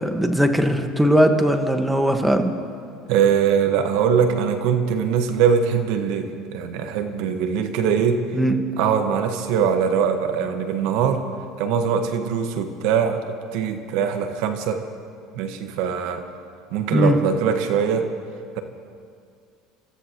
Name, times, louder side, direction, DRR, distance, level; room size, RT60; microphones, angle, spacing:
voice 1, 0.0-2.5 8.3-8.6 16.9-17.2, equal, 5° right, 6 dB, 1.5 m, -19 dB
voice 2, 3.1-8.2 8.8-11.3 11.6-14.9 15.3-16.2 16.7-18.1, right 7 dB, 70° right, 7 dB, 1.4 m, -22 dB
29.0 x 14.0 x 3.0 m, 2.3 s
hypercardioid pair, 85°, 0 cm